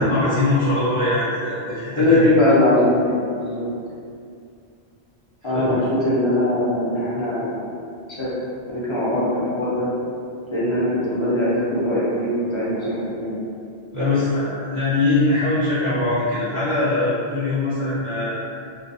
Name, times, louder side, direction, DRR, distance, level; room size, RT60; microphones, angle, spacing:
voice 1, 0.0-2.3 5.5-5.8 13.9-18.4, left 2 dB, 30° right, -14 dB, 0.8 m, -22 dB
voice 2, 1.9-3.7 5.4-7.7 8.1-8.3 8.7-9.9 10.5-13.4, left 1 dB, 35° left, -9 dB, 0.5 m, -21 dB
2.3 x 2.3 x 2.6 m, 2.4 s
omnidirectional pair, 1.1 m